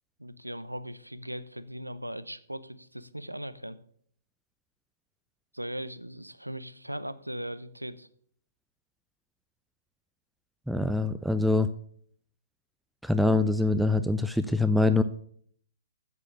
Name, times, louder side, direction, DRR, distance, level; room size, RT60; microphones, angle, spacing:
voice 1, 0.2-3.8 5.5-8.1, equal, 90° right, 14 dB, 0.6 m, -39 dB
voice 2, 10.7-11.7 13.0-15.0, left 2 dB, ahead, 10 dB, 0.4 m, -24 dB
8.2 x 7.1 x 6.9 m, 0.62 s
figure-of-eight pair, 120°, 0 cm